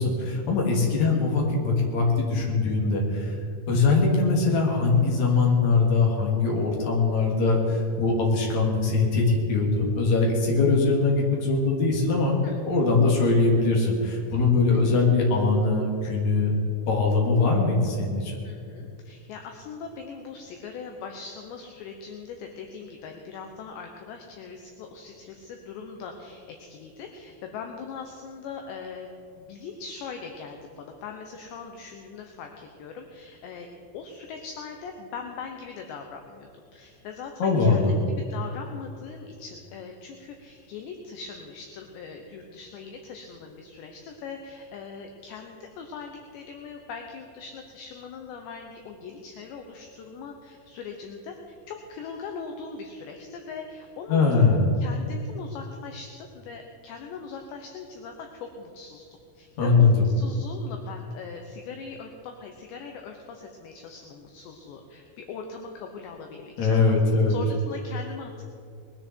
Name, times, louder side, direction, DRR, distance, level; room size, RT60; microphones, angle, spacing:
voice 1, 0.0-3.4 3.7-12.4 12.6-16.6 16.9-18.4 37.4-37.9 54.1-54.6 59.6-60.1 66.6-67.3, left 3 dB, 45° left, -1 dB, 3.2 m, -22 dB
voice 2, 12.4-12.9 14.7-14.8 18.4-29.1 29.4-33.7 33.9-59.1 59.3-66.9 67.3-68.4, left 5 dB, 75° left, 3 dB, 2.9 m, -40 dB
21.0 x 13.5 x 4.5 m, 2.6 s
omnidirectional pair, 5.6 m